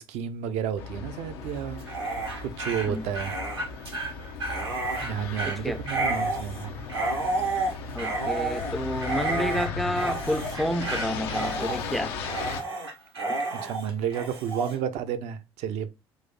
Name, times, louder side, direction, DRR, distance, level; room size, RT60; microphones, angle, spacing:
voice 1, 0.0-1.9 2.4-3.4 5.0-6.7 13.5-16.0, right 8 dB, 55° right, 0.6 m, -31 dB
sound 1, 0.8-12.6, left 5 dB, 70° left, 0.6 m, -36 dB
Dog, 1.7-14.8, right 2 dB, 85° right, 1.2 m, -31 dB
voice 2, 5.5-5.8 7.9-12.2, equal, ahead, 0.5 m, -30 dB
3.9 x 2.6 x 3.8 m
figure-of-eight pair, 55°, 13 cm